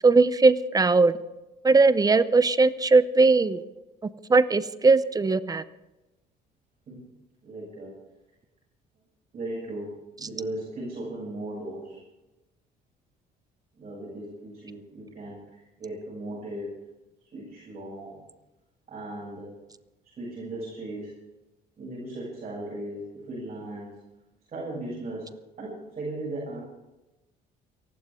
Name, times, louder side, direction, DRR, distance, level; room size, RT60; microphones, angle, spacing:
voice 1, 0.0-1.1 1.6-3.6 4.3-5.6, right 3 dB, 20° right, 14 dB, 0.7 m, -19 dB
voice 2, 7.4-7.9 9.3-12.0 13.8-16.7 17.2-18.2 18.9-19.5 20.0-21.2 21.8-23.9 24.5-25.3 25.6-26.6, right 1 dB, 40° right, -6 dB, 7.2 m, -37 dB
29.5 x 12.0 x 3.7 m, 1.0 s
cardioid pair, 110°, 17 cm